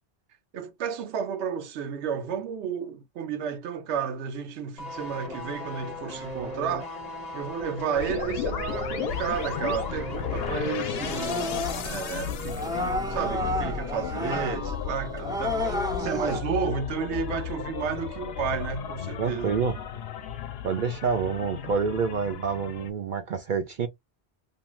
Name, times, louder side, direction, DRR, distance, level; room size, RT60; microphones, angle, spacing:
voice 1, 0.5-6.9 7.3-19.6, right 7 dB, 90° right, 0.9 m, -32 dB
sound 1, 4.8-11.5 11.7-11.9, left 2 dB, 40° left, 0.8 m, -37 dB
sound 2, 7.9-22.9, left 7 dB, 70° left, 0.8 m, -34 dB
sound 3, 11.0-16.4, left 1 dB, 5° right, 0.4 m, -31 dB
voice 2, 19.2-19.8 20.6-23.9, right 6 dB, 60° right, 0.6 m, -27 dB
2.6 x 2.3 x 3.0 m
omnidirectional pair, 1.1 m